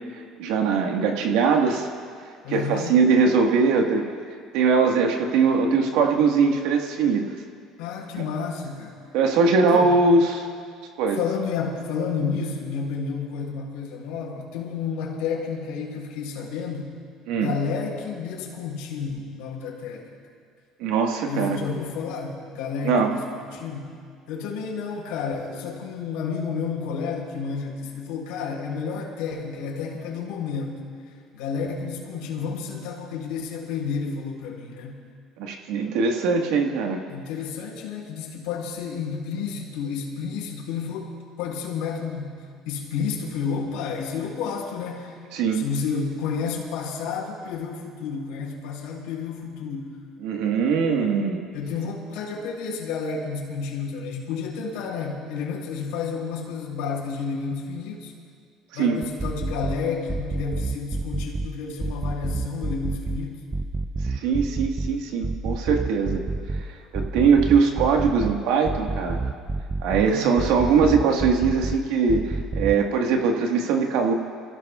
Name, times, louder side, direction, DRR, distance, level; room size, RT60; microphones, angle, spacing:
voice 1, 0.4-1.9 2.5-4.1 4.5-7.2 9.1-10.5 11.0-11.2 17.3-17.5 20.8-21.6 22.8-23.1 35.4-37.0 45.3-45.6 50.2-51.4 58.8-59.0 64.1-66.2 66.9-69.2 69.8-74.1, right 5 dB, 80° right, 2 dB, 1.6 m, -21 dB
voice 2, 2.4-3.0 7.8-9.0 9.7-9.9 11.1-16.9 17.3-20.1 21.3-23.9 24.3-30.8 31.3-35.0 37.1-42.4 42.7-45.2 45.5-50.0 51.5-58.1 58.7-63.4 70.0-70.4, left 5 dB, 80° left, -2 dB, 3.8 m, -31 dB
sound 1, 59.0-59.8 60.1-61.5 61.8-63.2 63.5-64.9 65.2-66.6 66.9-68.3 68.7-70.1 70.4-71.8 72.1-72.8, right 3 dB, 15° right, 0.6 m, -28 dB
28.0 x 16.0 x 2.4 m, 2.2 s
supercardioid pair, 95°, 0 cm